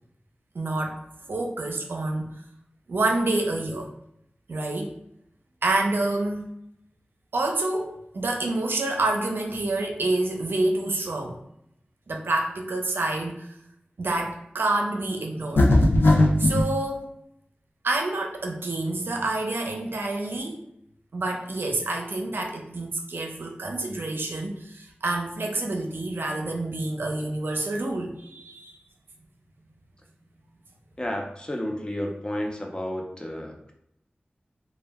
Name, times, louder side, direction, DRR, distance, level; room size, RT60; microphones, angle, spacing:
voice 1, 0.5-1.0 1.3-2.3 2.9-3.9 4.5-4.9 5.6-6.5 7.3-11.4 12.1-13.5 14.0-15.7 16.4-17.1 17.8-20.6 21.1-28.8, right 2 dB, 80° right, 2 dB, 0.5 m, -28 dB
sound 1, 15.6-16.7, left 1 dB, 75° left, 0.4 m, -18 dB
voice 2, 31.0-33.7, left 1 dB, 25° left, 1 dB, 0.6 m, -31 dB
2.2 x 2.1 x 3.4 m, 0.77 s
cardioid pair, 40°, 4 cm